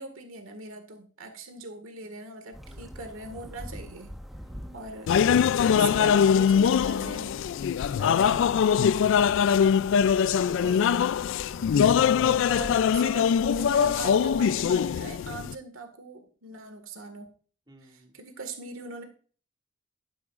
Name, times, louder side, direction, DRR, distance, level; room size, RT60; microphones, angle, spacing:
voice 1, 0.0-4.1 4.7-5.1 5.7-7.4 8.0-8.5 10.4-11.1 12.2-17.3 17.8-19.0, right 3 dB, 75° right, 7 dB, 1.8 m, -41 dB
sound 1, 2.5-14.5, equal, ahead, 1.2 m, -46 dB
voice 2, 2.7-3.1 4.4-4.9 5.9-6.2 7.8-8.3 9.2-10.1 10.5-10.9 17.7-18.1, right 1 dB, 20° right, 0 dB, 2.3 m, -51 dB
sound 2, 5.1-15.5, left 7 dB, 65° left, 0.3 m, -22 dB
12.5 x 9.6 x 2.5 m, 0.41 s
head